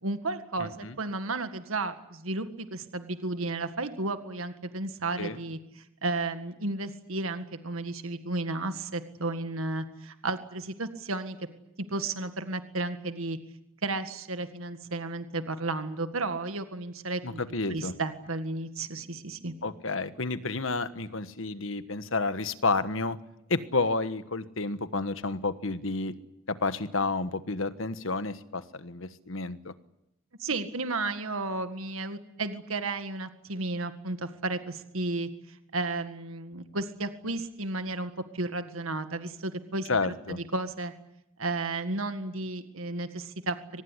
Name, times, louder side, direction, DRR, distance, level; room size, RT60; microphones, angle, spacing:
voice 1, 0.0-5.6 6.0-11.4 11.8-13.4 13.8-17.4 17.7-19.5 30.4-40.9 41.4-43.8, right 2 dB, 75° right, 9 dB, 1.9 m, -33 dB
voice 2, 0.6-0.9 5.2-5.4 17.2-17.9 19.6-23.2 23.5-26.1 26.5-29.7 39.9-40.4, left 3 dB, 65° left, 12 dB, 1.4 m, -30 dB
24.0 x 20.0 x 10.0 m, 0.86 s
head